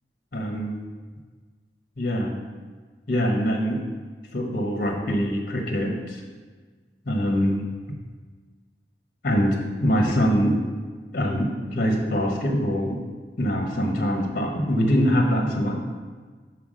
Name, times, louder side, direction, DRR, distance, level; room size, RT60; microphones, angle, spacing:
voice 1, 0.3-0.8 2.0-2.4 3.1-3.8 4.3-6.2 7.1-7.6 9.2-10.6 11.1-13.0 13.4-15.8, equal, 50° left, 1 dB, 1.2 m, -23 dB
5.8 x 4.7 x 6.3 m, 1.4 s
head